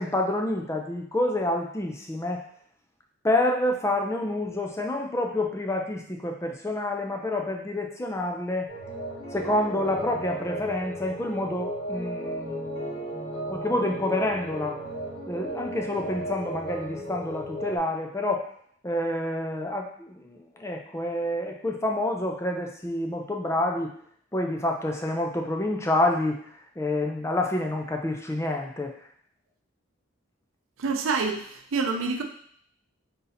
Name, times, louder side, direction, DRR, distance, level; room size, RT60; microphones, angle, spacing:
voice 1, 0.0-2.4 3.2-8.7 9.3-13.0 13.5-14.8 15.3-18.5 18.8-23.9 24.3-26.4 26.8-28.9, left 1 dB, 15° left, 2 dB, 0.4 m, -28 dB
sound 1, 8.7-17.8, right 1 dB, 80° left, 1.8 m, -35 dB
voice 2, 30.8-32.2, right 4 dB, 85° right, 4 dB, 0.6 m, -27 dB
3.9 x 2.7 x 4.0 m, 0.63 s
head